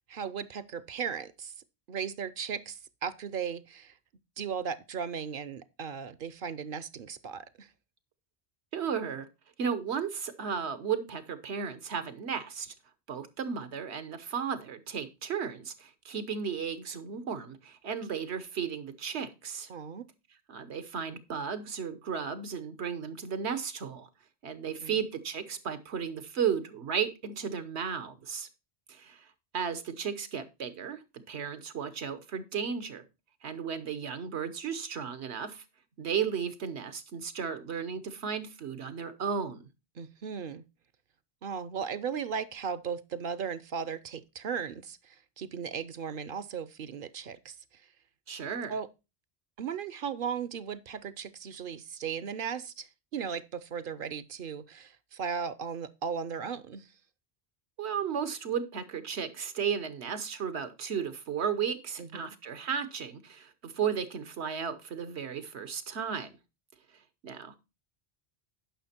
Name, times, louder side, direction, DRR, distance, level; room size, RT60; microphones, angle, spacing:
voice 1, 0.1-1.5 1.9-4.0 4.4-7.7 19.7-20.0 24.8-25.0 40.0-40.6 41.4-47.6 48.7-48.9 49.6-56.9 62.0-62.3, right 7 dB, 60° right, 0.8 m, -36 dB
voice 2, 8.7-9.3 9.6-12.7 13.1-19.7 20.5-24.1 24.4-28.5 28.9-29.3 29.5-33.0 33.4-35.6 36.0-39.6 48.3-48.7 57.8-66.3 67.2-67.6, right 7 dB, 85° right, 1.3 m, -34 dB
10.0 x 5.9 x 4.3 m
omnidirectional pair, 1.1 m